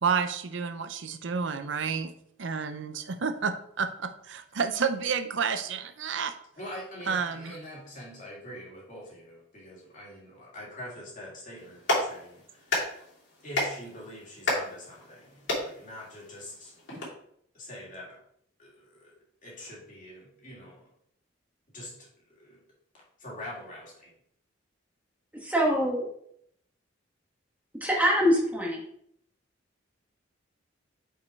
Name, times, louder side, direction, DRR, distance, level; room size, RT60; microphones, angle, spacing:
voice 1, 0.0-2.1 2.4-6.3 7.1-7.5, right 6 dB, 65° right, 9 dB, 0.6 m, -30 dB
voice 2, 6.5-12.9 13.4-16.7 17.5-18.2 18.6-19.1 19.4-20.8 21.7-22.6 23.2-24.1, left 1 dB, 40° left, -5 dB, 2.7 m, -44 dB
Clapping, 11.6-17.0, left 1 dB, 65° left, 3.0 m, -33 dB
voice 3, 25.4-26.1 27.8-28.8, equal, 10° right, -2 dB, 1.3 m, -24 dB
5.6 x 5.2 x 4.6 m, 0.69 s
head